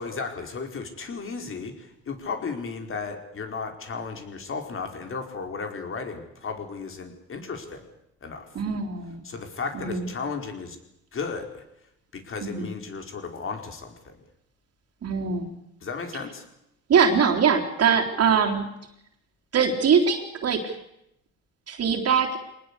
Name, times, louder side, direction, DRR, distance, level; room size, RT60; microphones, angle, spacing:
voice 1, 0.0-7.8 8.2-8.5 9.2-10.8 11.1-11.6 12.1-14.2 15.8-16.4, left 5 dB, 40° left, 5 dB, 4.7 m, -34 dB
voice 2, 8.6-9.2 9.7-10.1 12.4-12.7 15.0-15.5 16.9-18.7 19.5-20.8 21.7-22.3, right 6 dB, 45° right, 3 dB, 3.9 m, -22 dB
24.0 x 19.5 x 8.4 m, 0.82 s
cardioid pair, 100°, 33 cm